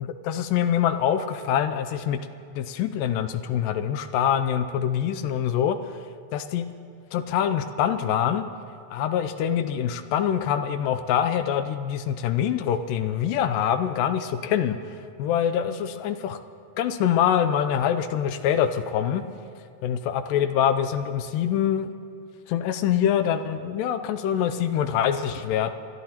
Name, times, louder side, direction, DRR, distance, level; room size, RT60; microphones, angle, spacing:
voice 1, 0.0-2.2 2.5-5.8 6.3-6.7 7.1-8.5 8.9-14.8 15.2-16.4 16.8-19.2 19.8-21.9 22.5-25.7, left 9 dB, 80° left, 10 dB, 2.1 m, -24 dB
27.5 x 12.5 x 2.9 m, 2.4 s
omnidirectional pair, 4.2 m